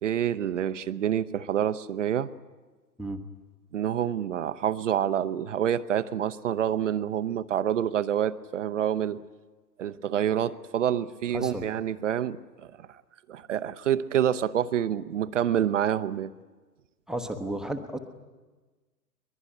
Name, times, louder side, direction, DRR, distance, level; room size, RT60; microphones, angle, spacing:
voice 1, 0.0-2.3 3.7-9.2 9.8-12.4 12.8-13.0 13.3-16.3, right 10 dB, 50° right, 12 dB, 0.8 m, -27 dB
voice 2, 11.3-11.7 17.1-18.0, right 1 dB, ahead, 5 dB, 0.8 m, -33 dB
22.0 x 21.0 x 9.8 m, 1.3 s
figure-of-eight pair, 115°, 48 cm